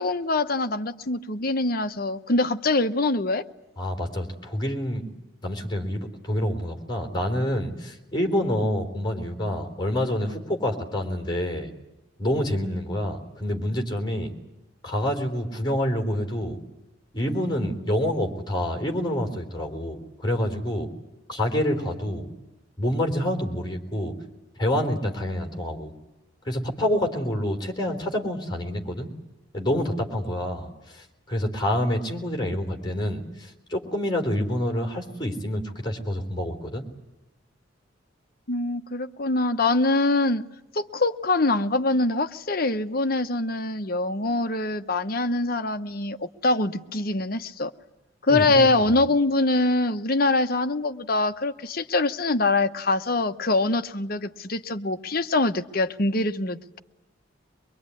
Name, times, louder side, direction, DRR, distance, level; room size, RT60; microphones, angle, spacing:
voice 1, 0.0-3.4 38.5-40.5 40.7-47.7 48.2-56.8, left 2 dB, 50° left, 9 dB, 1.0 m, -24 dB
voice 2, 3.8-5.0 5.4-11.7 12.2-14.3 14.8-16.6 17.1-20.9 21.3-22.3 22.8-24.1 24.6-25.9 26.4-29.1 29.5-36.8 48.3-49.0, left 1 dB, 20° left, 3 dB, 3.8 m, -27 dB
24.0 x 22.5 x 9.8 m, 1.0 s
head